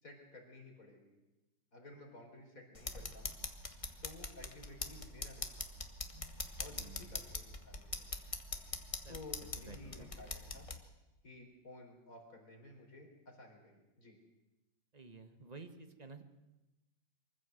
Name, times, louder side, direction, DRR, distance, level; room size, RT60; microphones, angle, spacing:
voice 1, 0.0-1.1 1.7-3.3 4.0-5.8 6.6-8.2 9.1-10.7 11.2-14.2, left 2 dB, 50° left, 1 dB, 4.5 m, -54 dB
sound 1, 2.7-10.8, left 2 dB, 20° left, 1.2 m, -43 dB
voice 2, 6.7-7.2 9.0-10.1 14.9-16.2, right 3 dB, 25° right, 7 dB, 1.4 m, -53 dB
23.5 x 15.0 x 7.9 m, 1.0 s
omnidirectional pair, 1.9 m